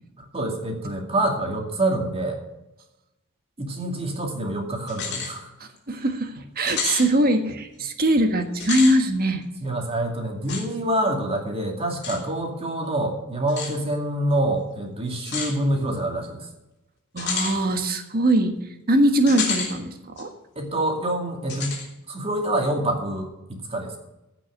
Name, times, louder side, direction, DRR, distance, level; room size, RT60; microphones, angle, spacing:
voice 1, 0.2-2.4 3.6-5.5 9.6-16.5 20.6-21.8 22.1-24.0, right 1 dB, 30° right, 2 dB, 2.4 m, -26 dB
sound 1, 4.9-5.3 5.8-5.9 6.7-7.1 8.5-9.0 10.5-10.6 12.0-12.2 13.5-13.7 15.3-15.5 17.2-17.6 19.3-19.7 20.2-20.3 21.5-21.9, left 5 dB, 55° left, 3.2 m, -29 dB
voice 2, 5.6-9.4 17.1-18.5 18.9-20.3, right 1 dB, 45° right, 6 dB, 1.5 m, -22 dB
15.5 x 6.1 x 6.4 m, 0.95 s
head